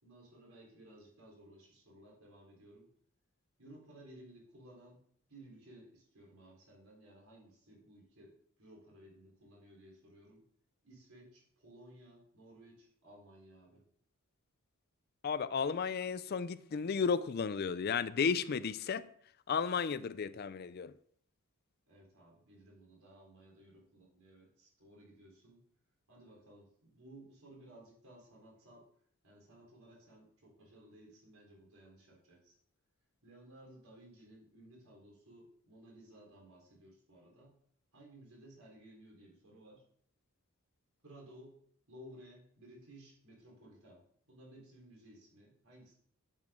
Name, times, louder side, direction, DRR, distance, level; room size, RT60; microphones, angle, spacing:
voice 1, 0.0-2.9 3.6-5.0 5.3-10.4 10.8-13.8 21.9-25.6 26.1-28.9 29.2-32.6 33.2-37.6 37.9-39.8 41.0-41.6 41.9-46.0, right 1 dB, 75° right, 4.0 m, -57 dB
voice 2, 15.2-19.1 19.5-20.9, left 6 dB, 45° left, 0.4 m, -33 dB
11.0 x 8.0 x 3.8 m
head